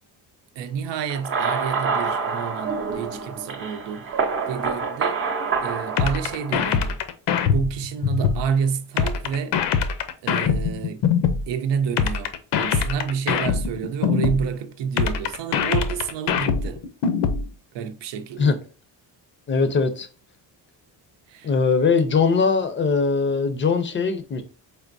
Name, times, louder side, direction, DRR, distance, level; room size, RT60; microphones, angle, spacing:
voice 1, 0.6-4.1 4.5-5.2 5.6-7.0 7.4-9.6 10.2-11.0 11.5-12.3 12.6-16.8 17.7-18.6 21.3-21.5, right 7 dB, 75° right, 0.7 m, -29 dB
sound 1, 1.1-6.9, right 5 dB, 30° right, 0.6 m, -27 dB
sound 2, 6.0-8.5 9.0-11.5 12.0-14.5 15.0-17.5, left 6 dB, 70° left, 0.7 m, -22 dB
voice 2, 19.5-20.1 21.4-24.4, left 5 dB, 25° left, 0.5 m, -21 dB
4.4 x 3.5 x 2.6 m
cardioid pair, 140°, 43 cm